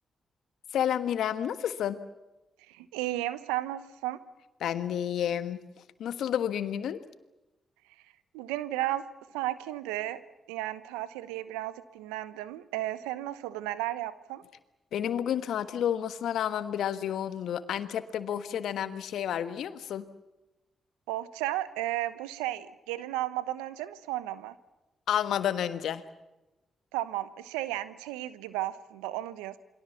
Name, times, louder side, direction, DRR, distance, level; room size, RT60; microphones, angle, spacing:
voice 1, 0.7-2.0 4.6-5.6 6.0-7.0 14.9-20.0 25.1-26.0, left 9 dB, 70° left, 11 dB, 1.4 m, -30 dB
voice 2, 2.8-4.2 8.3-9.0 9.3-10.2 10.5-14.4 21.1-24.5 26.9-29.6, right 15 dB, 85° right, 15 dB, 1.0 m, -34 dB
28.5 x 23.0 x 7.2 m, 1.0 s
hypercardioid pair, 40°, 0 cm